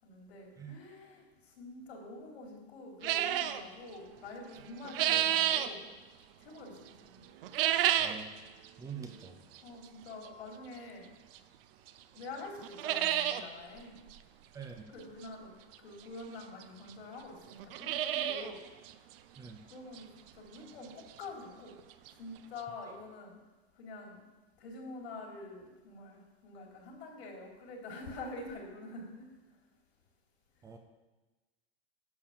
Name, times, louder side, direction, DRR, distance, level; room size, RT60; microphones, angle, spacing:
voice 1, 0.0-5.9 6.4-7.2 9.6-11.1 12.1-14.0 14.9-15.5 15.8-18.6 19.7-20.1 20.3-21.7 22.2-23.4 23.7-24.3 24.6-29.3, left 2 dB, 90° left, 0 dB, 3.8 m, -46 dB
sound 1, 3.0-3.6 4.6-5.7 7.4-8.2 8.6-8.7 9.6-9.7 11.3-11.4 11.9-12.0 12.2-12.3 12.6-13.4 13.8-13.9 14.1-14.2 15.7-15.8 16.6-16.7 16.9-17.0 17.5-18.5 18.9-19.0 19.5-19.6 20.0-20.1 21.8-21.9 22.1-22.2 22.6-22.7, right 11 dB, 60° right, 0.8 m, -30 dB
voice 2, 8.8-9.3 14.5-14.8 19.4-19.6 30.6-30.8, right 6 dB, 10° right, 4 dB, 0.5 m, -44 dB
10.5 x 6.7 x 7.3 m, 1.2 s
supercardioid pair, 165°, 31 cm